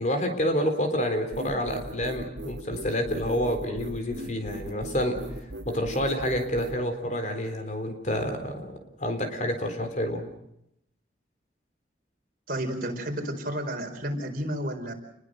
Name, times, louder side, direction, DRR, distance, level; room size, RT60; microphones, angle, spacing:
voice 1, 0.0-5.2 5.6-10.2, equal, 40° left, 6 dB, 3.9 m, -28 dB
sound 1, 1.3-6.8, right 1 dB, 75° right, 2.1 m, -39 dB
voice 2, 12.5-14.9, right 1 dB, 50° right, 4 dB, 4.8 m, -31 dB
29.5 x 21.5 x 6.6 m, 0.79 s
head